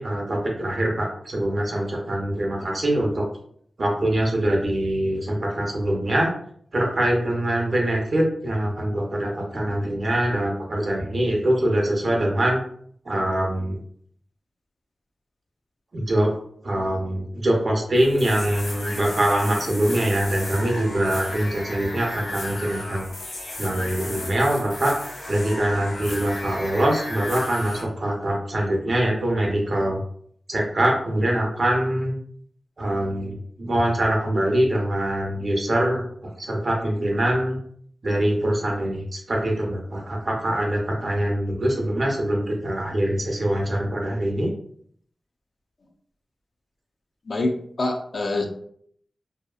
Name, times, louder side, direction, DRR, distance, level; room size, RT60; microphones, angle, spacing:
voice 1, 0.0-3.3 3.8-6.3 6.7-12.6 13.0-13.8 15.9-16.3 16.6-23.1 23.6-24.9 25.3-30.0 30.5-32.2 32.8-36.0 36.4-37.6 38.0-44.5, right 1 dB, 50° right, -1 dB, 0.7 m, -23 dB
sound 1, 18.0-27.8, left 1 dB, 85° left, 0.7 m, -35 dB
voice 2, 47.3-48.4, left 2 dB, 55° left, 3 dB, 0.4 m, -26 dB
2.7 x 2.3 x 2.3 m, 0.63 s
wide cardioid pair, 85°, 0 cm